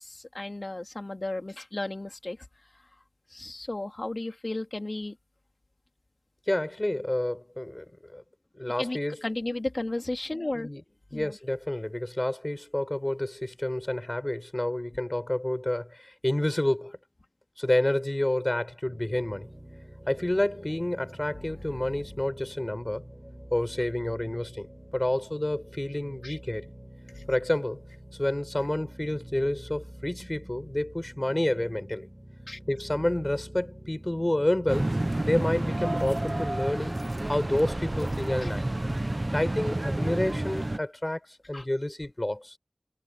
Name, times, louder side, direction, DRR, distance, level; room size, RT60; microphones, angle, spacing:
voice 1, 0.0-2.4 3.3-5.2 8.8-10.7 11.1-11.4 21.5-22.0 26.2-26.4 27.1-27.3 32.5-32.6 38.4-38.5 41.5-41.7, left 2 dB, 65° left, 2.6 m, -34 dB
voice 2, 6.5-7.9 8.1-8.2 8.5-9.2 10.5-10.8 11.1-17.0 17.6-19.5 20.1-23.0 23.5-24.7 24.9-26.7 27.3-27.8 28.2-32.1 32.7-34.9 35.2-37.0 37.2-38.6 39.3-42.6, left 1 dB, 35° left, 4.7 m, -29 dB
sound 1, 18.8-38.4, right 1 dB, 20° right, 5.7 m, -46 dB
sound 2, 34.7-40.8, right 1 dB, 50° right, 0.8 m, -30 dB
wide cardioid pair, 45°, 0 cm